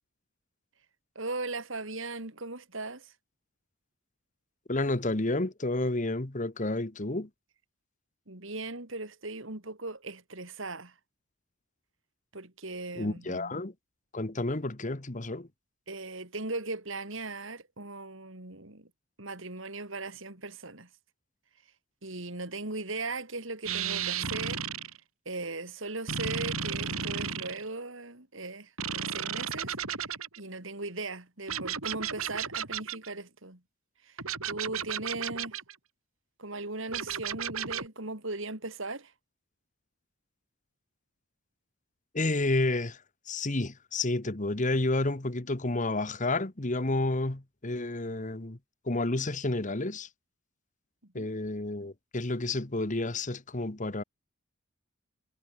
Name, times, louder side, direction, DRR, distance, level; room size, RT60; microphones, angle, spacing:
voice 1, 1.2-3.1 8.3-11.0 12.3-13.7 15.9-18.9 19.2-20.9 22.0-24.6 25.3-33.6 34.0-34.2 34.4-35.6 36.4-39.1 51.0-51.3, right 2 dB, 65° right, 3.9 m, -38 dB
voice 2, 4.7-7.3 12.9-13.7 14.1-15.5 42.1-48.6 48.8-50.1 51.1-54.0, left 2 dB, 35° left, 1.4 m, -30 dB
sound 1, 23.7-25.0 26.1-27.6 28.8-30.4 31.5-33.1 34.2-35.7 36.9-37.9, right 7 dB, 85° right, 3.7 m, -34 dB
head